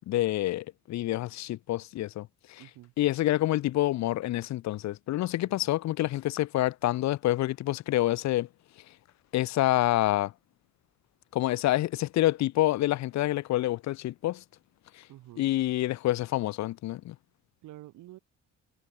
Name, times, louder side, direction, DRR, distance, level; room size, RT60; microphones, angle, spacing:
voice 1, 0.1-2.6 3.0-8.5 9.3-10.3 11.3-14.4 14.9-15.0 15.4-17.2, left 15 dB, 65° left, 0.5 m, -27 dB
voice 2, 2.6-2.9 5.5-5.7 15.1-15.5 17.6-18.2, right 16 dB, 90° right, 1.9 m, -49 dB
cardioid pair, 90°, 30 cm